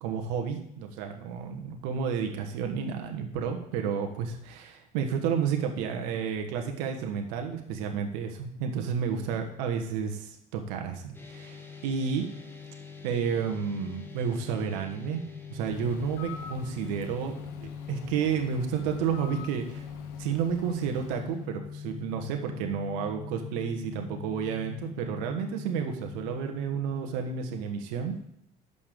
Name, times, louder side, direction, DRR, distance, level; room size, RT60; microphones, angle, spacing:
voice 1, 0.0-12.3 13.0-15.2 15.5-19.6 20.2-28.1, right 7 dB, 75° right, 4 dB, 1.3 m, -31 dB
sound 1, 11.1-27.1, left 6 dB, 10° left, 1.6 m, -42 dB
Bird, 15.6-21.5, left 9 dB, 75° left, 1.0 m, -46 dB
6.8 x 5.5 x 6.7 m, 0.74 s
hypercardioid pair, 80°, 21 cm